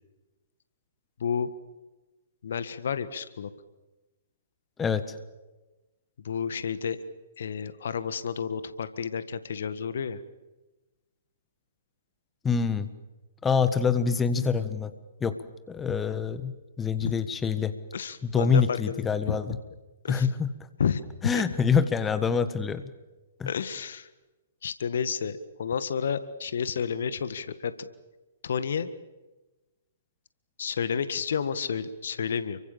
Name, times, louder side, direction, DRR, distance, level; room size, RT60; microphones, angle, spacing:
voice 1, 1.2-1.5 2.4-3.5 6.2-7.0 7.4-10.2 17.0-17.1 17.9-19.0 19.3-19.4 20.0-20.3 20.8-21.0 21.3-21.4 23.5-24.1 24.6-27.9 28.4-28.9 30.6-32.6, left 7 dB, 60° left, 13 dB, 1.6 m, -30 dB
voice 2, 4.8-5.2 12.4-12.9 13.4-14.9 15.2-15.4 15.7-17.7 18.2-19.6 20.1-20.5 21.2-22.8 23.4-23.5, left 6 dB, 15° left, 12 dB, 1.5 m, -26 dB
30.0 x 24.0 x 7.4 m, 1.1 s
figure-of-eight pair, 120°, 0 cm